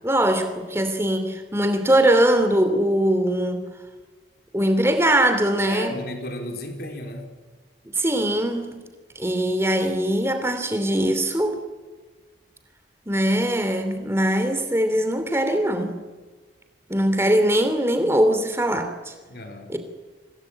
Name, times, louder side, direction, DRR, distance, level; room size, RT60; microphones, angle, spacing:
voice 1, 0.0-3.7 4.5-5.9 7.9-8.8 9.1-11.6 13.1-16.0 16.9-19.1 19.7-19.8, right 1 dB, 15° right, 8 dB, 2.8 m, -21 dB
voice 2, 5.7-7.3 19.3-19.8, left 1 dB, 55° left, 3 dB, 4.2 m, -34 dB
26.0 x 19.0 x 8.8 m, 1.4 s
head